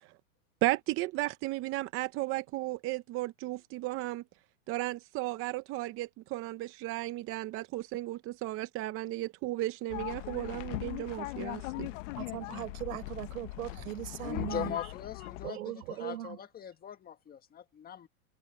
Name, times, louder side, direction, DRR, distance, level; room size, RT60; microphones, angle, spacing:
voice 1, 0.6-4.2 4.7-11.9, right 18 dB, 30° right, 0.7 m, -34 dB
sound 1, 9.9-15.5, left 21 dB, 60° left, 0.9 m, -39 dB
voice 2, 12.2-14.8 15.4-16.4, right 15 dB, 75° right, 7.3 m, -39 dB
voice 3, 14.2-18.1, left 9 dB, 20° left, 1.5 m, -41 dB
supercardioid pair, 145°, 43 cm